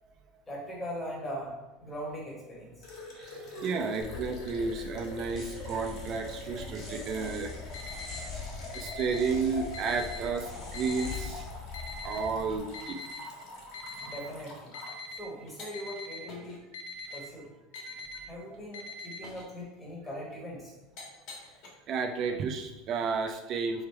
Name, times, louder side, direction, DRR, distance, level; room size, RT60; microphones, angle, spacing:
voice 1, 0.5-1.5 1.8-2.8 14.0-14.7 15.2-16.6 17.1-17.5 18.3-20.7, equal, 10° left, -3 dB, 1.1 m, -40 dB
sound 1, 2.8-15.0 15.5-16.0 16.3-16.6 17.1-17.2 17.7-18.0 18.5-18.8 19.2-19.5 20.3-20.4 21.0-21.7, left 2 dB, 45° left, 1.4 m, -45 dB
voice 2, 3.1-7.5 8.7-11.4 12.0-13.0 14.0-14.2 17.9-18.0 21.9-23.9, right 5 dB, 30° right, 6 dB, 0.4 m, -32 dB
sound 2, 4.0-12.6, left 4 dB, 25° left, 1.5 m, -42 dB
Alarm, 7.7-8.2 8.7-9.2 9.7-10.2 10.7-11.2 11.7-12.2 12.7-13.2 13.7-14.2 14.7-15.2 15.7-16.2 16.7-17.2 17.7-18.2 18.7-19.2, left 4 dB, 80° left, 0.6 m, -41 dB
3.5 x 3.4 x 4.4 m, 1.0 s
supercardioid pair, 175°, 0 cm